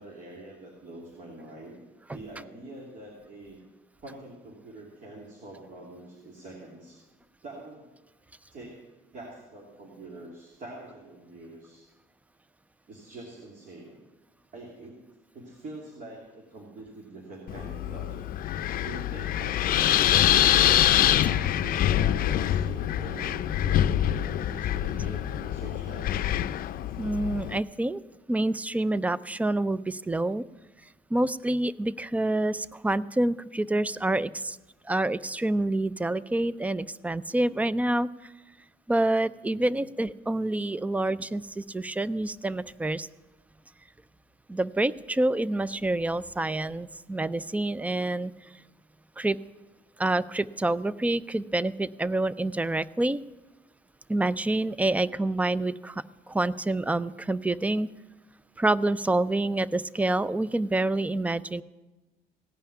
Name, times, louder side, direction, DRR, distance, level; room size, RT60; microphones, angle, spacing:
voice 1, 0.0-1.8 2.1-3.6 4.0-7.0 7.4-7.9 8.5-8.8 9.1-11.9 12.9-14.0 14.5-15.0 15.3-18.2 18.8-20.8 21.2-26.3 39.5-39.9, right 2 dB, 50° right, -1 dB, 2.9 m, -44 dB
Wind, 17.5-27.6, left 12 dB, 60° left, 0.5 m, -25 dB
voice 2, 27.0-28.0 28.3-30.4 31.1-34.6 34.8-38.3 38.9-43.1 44.5-48.3 49.2-49.4 50.0-53.2 54.1-57.9 58.6-61.6, right 2 dB, 10° right, 18 dB, 0.4 m, -27 dB
17.0 x 5.7 x 10.0 m, 1.1 s
cardioid pair, 110°, 17 cm